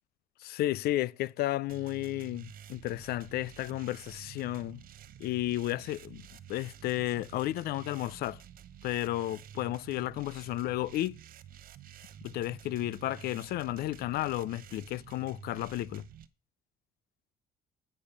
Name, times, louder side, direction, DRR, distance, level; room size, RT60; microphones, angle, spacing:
voice 1, 0.4-4.8 5.2-6.2 6.5-8.4 8.8-11.2 12.2-16.0, left 15 dB, 65° left, 0.4 m, -33 dB
sound 1, 1.7-16.3, right 10 dB, 60° right, 0.8 m, -50 dB
8.3 x 5.1 x 7.1 m
cardioid pair, 110°, 17 cm